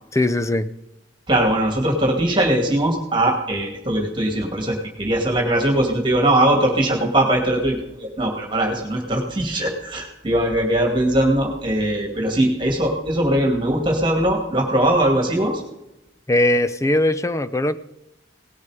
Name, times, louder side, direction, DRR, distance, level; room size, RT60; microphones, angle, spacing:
voice 1, 0.1-0.7 16.3-17.8, left 1 dB, 15° left, 13 dB, 0.6 m, -20 dB
voice 2, 1.3-15.6, right 1 dB, 25° right, 1 dB, 2.3 m, -20 dB
18.5 x 11.0 x 4.9 m, 0.92 s
head